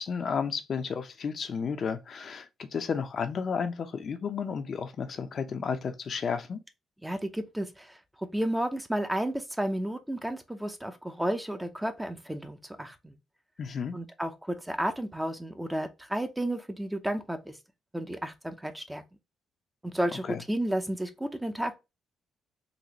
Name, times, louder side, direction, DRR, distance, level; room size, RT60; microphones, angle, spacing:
voice 1, 0.0-6.6 13.6-14.0 20.2-20.4, left 6 dB, 50° left, 0.6 m, -32 dB
voice 2, 7.0-13.1 13.9-17.5 17.9-19.0 19.8-21.8, right 1 dB, 10° right, 0.6 m, -32 dB
4.0 x 2.5 x 2.9 m
cardioid pair, 90°, 0 cm